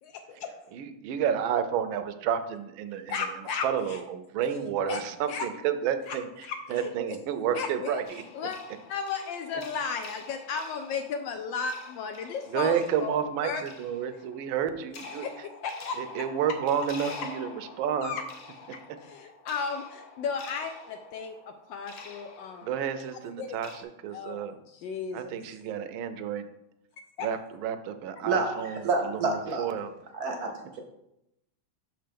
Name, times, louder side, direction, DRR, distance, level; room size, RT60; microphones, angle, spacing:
voice 1, 0.0-0.6 3.1-4.0 4.9-5.0 5.3-5.4 6.1-6.2 6.4-6.9 7.5-8.0 8.3-8.6 8.9-13.2 13.4-13.6 15.2-15.3 15.6-16.2 18.0-18.2 18.7-22.7 23.4-23.6 24.1-25.4 27.2-27.3, left 5 dB, 75° left, 6 dB, 1.2 m, -34 dB
voice 2, 0.7-3.3 3.6-6.3 6.7-8.2 12.5-15.5 16.0-18.2 22.6-24.5 25.1-26.5 27.2-29.9, right 8 dB, 80° right, 10 dB, 1.4 m, -30 dB
sound 1, 8.0-23.8, left 4 dB, 55° left, 1.2 m, -47 dB
voice 3, 28.2-29.6 30.1-30.8, right 3 dB, 60° right, 3 dB, 1.1 m, -29 dB
6.2 x 4.5 x 5.1 m, 0.84 s
omnidirectional pair, 2.2 m